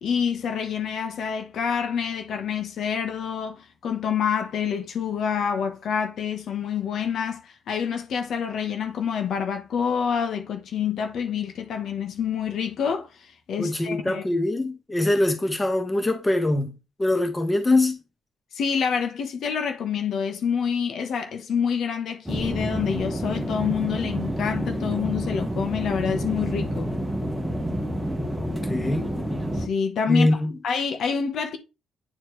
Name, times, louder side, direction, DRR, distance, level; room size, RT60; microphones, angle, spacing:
voice 1, 0.0-14.2 18.5-26.9 29.5-30.3 30.6-31.6, left 7 dB, 65° left, 1.1 m, -27 dB
voice 2, 13.6-16.7 17.0-18.0 28.4-29.1 30.1-30.5, left 2 dB, 15° left, 1.5 m, -23 dB
sound 1, 22.3-29.7, equal, 10° right, 1.2 m, -29 dB
9.5 x 4.2 x 3.2 m
cardioid pair, 90°, 0 cm